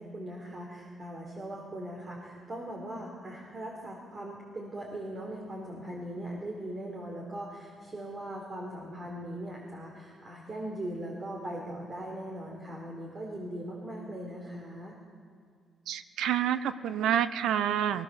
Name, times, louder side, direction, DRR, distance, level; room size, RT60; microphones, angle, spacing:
voice 1, 0.0-15.0, right 1 dB, 35° right, -1 dB, 4.2 m, -40 dB
voice 2, 15.9-18.0, right 10 dB, 80° right, 13 dB, 0.8 m, -28 dB
19.5 x 19.0 x 7.1 m, 2.1 s
cardioid pair, 90°, 0 cm